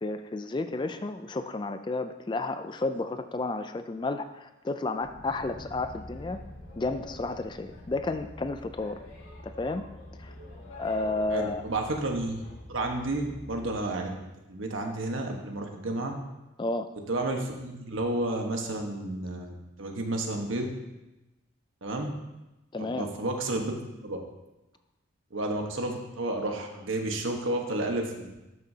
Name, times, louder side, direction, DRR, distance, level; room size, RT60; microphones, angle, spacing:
voice 1, 0.0-6.4 6.8-9.0 9.4-9.8 10.2-10.3 10.8-11.6 16.6-16.9 22.7-23.1, left 2 dB, 25° left, 10 dB, 0.3 m, -32 dB
Boat Water vehicle, 5.0-13.8, left 1 dB, 85° left, 2.1 m, -46 dB
voice 2, 11.3-12.4 12.7-14.1 14.5-16.1 17.1-20.7 21.8-22.1 22.8-23.8 24.0-24.2 25.3-28.4, right 2 dB, 80° right, 2 dB, 1.3 m, -31 dB
12.5 x 6.4 x 2.8 m, 1.0 s
head